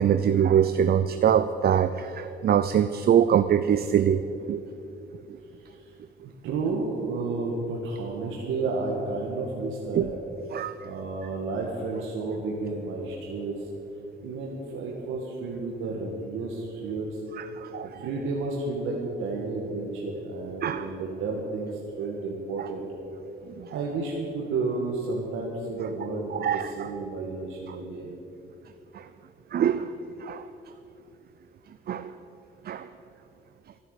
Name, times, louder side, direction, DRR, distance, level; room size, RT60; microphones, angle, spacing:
voice 1, 0.0-4.6 5.3-5.4 10.0-10.1 10.5-10.7 17.4-17.9 20.6-20.8 22.6-22.7 23.6-23.7 26.4-26.9 28.9-29.0 29.5-29.9 30.2-30.4 31.9-32.1 32.7-32.9, right 9 dB, 50° right, 11 dB, 0.5 m, -24 dB
voice 2, 6.2-10.1 10.8-13.7 14.2-17.2 17.8-22.9 23.7-28.1, right 3 dB, 90° right, -2 dB, 1.8 m, -31 dB
14.0 x 9.4 x 8.2 m, 3.0 s
cardioid pair, 90°, 20 cm